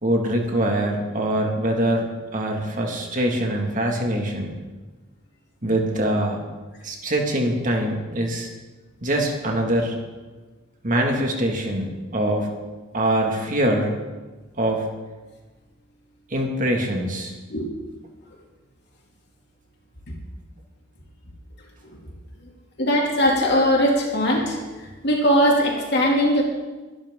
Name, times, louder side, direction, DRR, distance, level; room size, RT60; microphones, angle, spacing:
voice 1, 0.0-4.5 5.6-6.4 6.8-8.5 9.0-10.0 10.8-12.5 12.9-13.9 14.6-14.8 16.3-17.3, right 1 dB, 40° right, 1 dB, 2.1 m, -23 dB
voice 2, 22.8-24.6 25.0-26.4, equal, 55° left, -2 dB, 2.8 m, -19 dB
22.5 x 11.5 x 3.8 m, 1.2 s
head